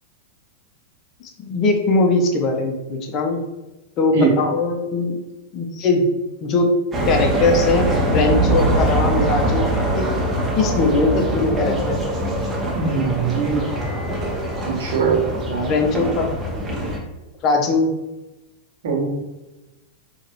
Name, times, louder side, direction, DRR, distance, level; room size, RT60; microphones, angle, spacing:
voice 1, 1.2-3.4 4.0-5.2 5.5-6.1 6.4-6.7 7.1-10.0 10.6-12.0 15.6-16.6 17.4-17.9, left 3 dB, 40° left, 3 dB, 0.9 m, -20 dB
sound 1, 6.9-17.0, right 1 dB, 20° right, 1.3 m, -22 dB
voice 2, 12.7-13.6 14.7-15.2 15.5-15.7 18.8-19.1, right 5 dB, 70° right, -1 dB, 1.4 m, -21 dB
4.5 x 3.1 x 3.1 m, 1.0 s
hypercardioid pair, 105°, 0 cm